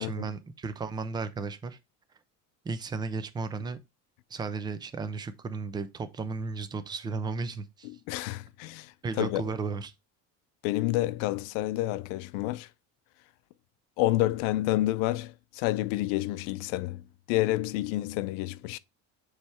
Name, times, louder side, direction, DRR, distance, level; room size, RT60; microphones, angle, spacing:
voice 1, 0.0-1.8 2.6-3.8 4.3-7.9 9.0-9.9, right 4 dB, 10° right, 0.4 m, -34 dB
voice 2, 7.8-9.4 10.6-12.7 14.0-18.8, left 16 dB, 80° left, 0.6 m, -29 dB
7.2 x 3.3 x 4.6 m
cardioid pair, 155°, 37 cm